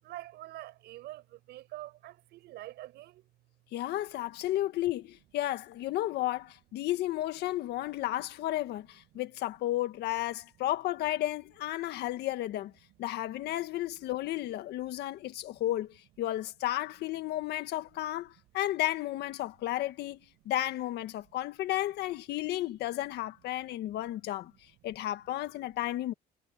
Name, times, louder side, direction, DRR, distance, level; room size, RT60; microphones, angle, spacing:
voice 1, 0.0-3.3 7.8-7.9 11.9-12.0 15.3-15.6 17.4-17.5, right 16 dB, 80° right, 5.9 m, -46 dB
voice 2, 3.7-12.7 13.0-20.2 20.5-24.5 24.8-26.1, left 14 dB, 75° left, 1.8 m, -33 dB
cardioid pair, 110°, 17 cm